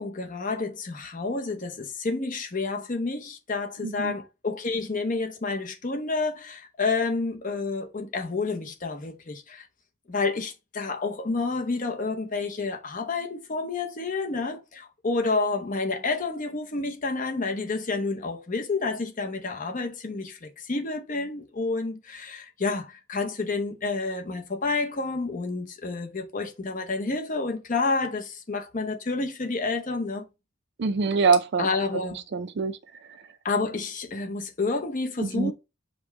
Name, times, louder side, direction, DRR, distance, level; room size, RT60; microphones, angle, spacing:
voice 1, 0.0-9.7 10.1-30.3 31.6-32.2 33.4-35.5, left 3 dB, 35° left, 0.7 m, -29 dB
voice 2, 3.8-4.2 30.8-31.7 32.3-32.8 33.1-33.2 35.2-35.5, right 5 dB, 50° right, 0.4 m, -24 dB
5.2 x 2.2 x 4.6 m
head